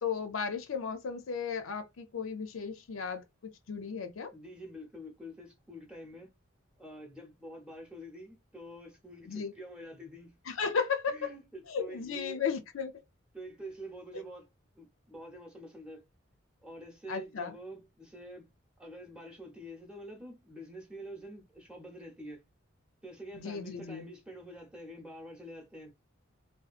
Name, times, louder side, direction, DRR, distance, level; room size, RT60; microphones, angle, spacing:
voice 1, 0.0-4.3 9.3-9.5 10.5-11.3 11.7-12.9 17.1-17.5 23.3-24.1, left 6 dB, 80° left, 0.5 m, -35 dB
voice 2, 4.3-6.3 6.8-10.4 11.1-12.4 13.3-16.1 16.6-18.5 18.8-22.4 23.0-25.9, equal, 5° right, 0.7 m, -47 dB
2.7 x 2.3 x 2.4 m
head